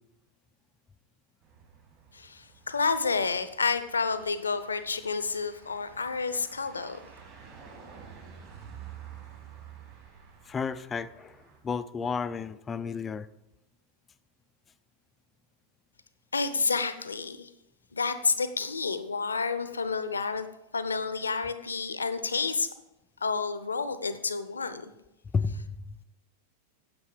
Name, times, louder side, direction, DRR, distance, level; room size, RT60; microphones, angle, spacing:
sound 1, 1.4-11.6, right 8 dB, 45° right, 3.6 m, -50 dB
voice 1, 2.1-7.0 16.3-17.5 17.9-20.5 20.7-22.7 23.2-24.9, left 4 dB, 75° left, 12 dB, 0.7 m, -30 dB
voice 2, 10.5-13.3 25.3-26.0, left 5 dB, 20° left, 13 dB, 0.4 m, -32 dB
9.6 x 7.6 x 4.9 m, 0.92 s
figure-of-eight pair, 90°, 0 cm